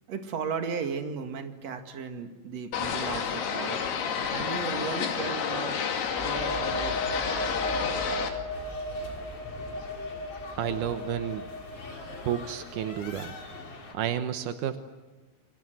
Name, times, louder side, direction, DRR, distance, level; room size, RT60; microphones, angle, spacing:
voice 1, 0.1-3.8 4.3-5.8 6.2-6.9, right 6 dB, 45° right, 6 dB, 2.5 m, -35 dB
sound 1, 2.7-8.3, left 6 dB, 65° left, 4.3 m, -30 dB
sound 2, 6.1-13.6, equal, 5° left, 4.1 m, -36 dB
sound 3, 8.5-13.9, left 3 dB, 35° left, 4.2 m, -45 dB
voice 2, 10.6-11.5 12.2-13.3 13.9-14.8, right 10 dB, 80° right, 9 dB, 1.8 m, -31 dB
29.5 x 25.0 x 8.0 m, 1.3 s
omnidirectional pair, 5.2 m